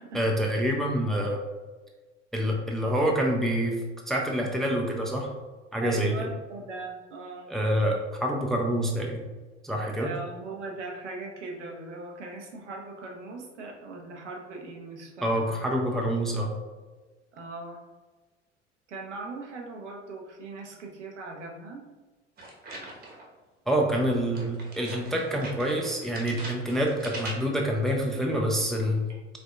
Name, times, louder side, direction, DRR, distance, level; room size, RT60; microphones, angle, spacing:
voice 1, 0.1-1.4 2.3-3.8 4.1-5.3 5.7-6.3 7.5-9.2 9.6-10.1 15.2-16.5 23.7-29.1, equal, ahead, 0 dB, 0.5 m, -27 dB
voice 2, 5.8-7.5 9.8-15.6 17.3-17.8 18.9-21.8 29.1-29.2, right 3 dB, 75° right, 0 dB, 0.9 m, -39 dB
sound 1, 22.4-23.3 24.3-27.7, right 1 dB, 25° right, 1.1 m, -42 dB
4.9 x 3.7 x 2.3 m, 1.3 s
figure-of-eight pair, 70°, 36 cm